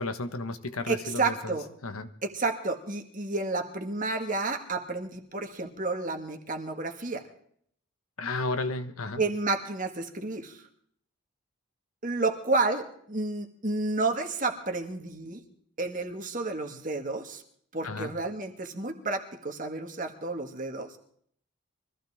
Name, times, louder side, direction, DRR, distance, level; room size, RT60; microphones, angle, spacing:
voice 1, 0.0-1.6 1.8-2.1 8.2-9.2 17.8-18.2, left 2 dB, 90° left, 9 dB, 1.4 m, -33 dB
voice 2, 0.9-1.7 2.2-7.2 9.2-10.6 12.0-15.4 15.8-17.4 17.7-21.0, right 3 dB, 40° right, 4 dB, 1.8 m, -31 dB
23.5 x 15.0 x 3.7 m, 0.64 s
head